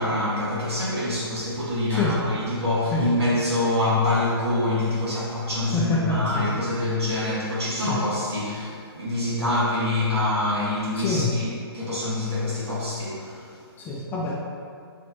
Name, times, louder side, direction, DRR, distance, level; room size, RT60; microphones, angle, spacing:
voice 1, 0.0-13.6, left 2 dB, 75° right, -8 dB, 1.4 m, -25 dB
voice 2, 1.9-2.3 2.9-3.1 5.7-6.5 7.8-8.0 11.0-11.3 13.8-14.3, left 2 dB, 15° left, -4 dB, 0.3 m, -26 dB
4.3 x 2.5 x 4.4 m, 2.3 s
hypercardioid pair, 140°, 14 cm